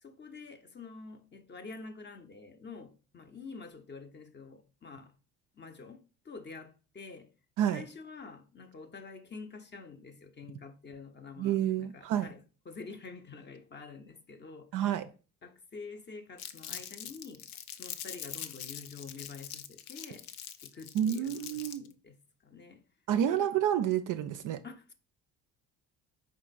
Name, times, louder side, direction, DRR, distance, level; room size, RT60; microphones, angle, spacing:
voice 1, 0.0-5.1 5.5-7.3 7.7-14.8 15.4-17.5 17.7-20.3 20.6-22.2 22.4-22.8 23.3-23.5 24.6-24.9, left 4 dB, 25° left, 0.6 m, -48 dB
voice 2, 11.4-12.3 14.7-15.1 20.9-21.8 23.1-24.6, right 10 dB, 45° right, 0.4 m, -29 dB
Crumpling crinkling, 16.4-21.9, left 10 dB, 75° left, 0.5 m, -43 dB
4.5 x 3.7 x 2.5 m
hypercardioid pair, 60°, 45 cm